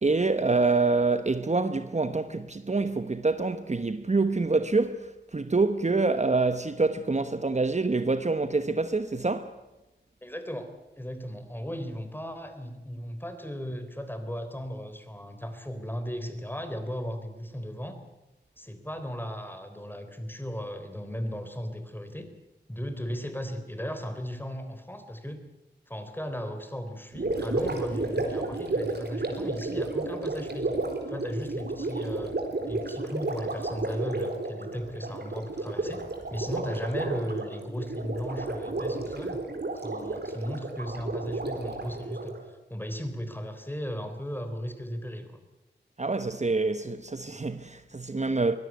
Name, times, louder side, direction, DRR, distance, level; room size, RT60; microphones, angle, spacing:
voice 1, 0.0-9.5 46.0-48.6, right 3 dB, 40° right, 1.1 m, -26 dB
voice 2, 10.2-18.0 18.6-22.3 22.7-25.4 25.9-30.8 31.1-32.4 32.7-36.0 36.3-39.4 39.7-45.3, equal, 10° left, 3.6 m, -36 dB
Gurgling, 27.1-42.4, right 2 dB, 65° right, 4.1 m, -32 dB
23.0 x 17.5 x 9.5 m
wide cardioid pair, 80°, 19 cm